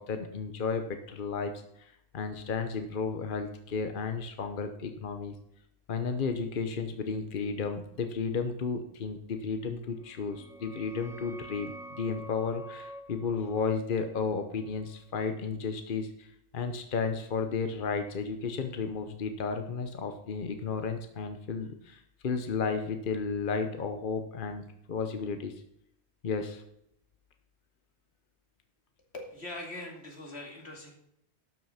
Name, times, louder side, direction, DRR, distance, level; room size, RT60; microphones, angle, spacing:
voice 1, 0.0-5.3 5.9-25.5 26.2-26.6, left 5 dB, 55° left, 7 dB, 1.0 m, -33 dB
sound 1, 10.0-15.5, right 1 dB, 5° right, 0.3 m, -48 dB
voice 2, 29.1-30.9, left 1 dB, 90° left, 1 dB, 2.7 m, -42 dB
12.0 x 6.2 x 5.7 m, 0.75 s
omnidirectional pair, 1.1 m